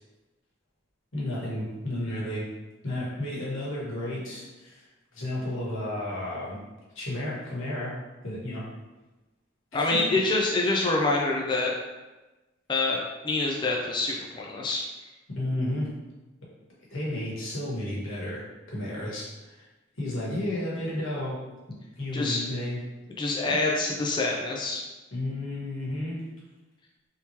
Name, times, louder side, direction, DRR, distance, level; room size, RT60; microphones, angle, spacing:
voice 1, 1.1-2.5 2.8-4.8 5.1-6.6 6.9-7.9 8.2-8.6 9.7-10.2 15.3-15.9 16.9-18.4 18.7-19.6 20.0-21.4 22.0-22.8 23.5-23.6 25.1-26.2, left 1 dB, 90° left, -6 dB, 1.3 m, -32 dB
voice 2, 9.7-11.7 12.7-13.0 13.2-14.8 22.1-22.4 23.2-24.8, left 2 dB, 25° left, -1 dB, 0.3 m, -26 dB
3.5 x 2.9 x 2.8 m, 1.1 s
head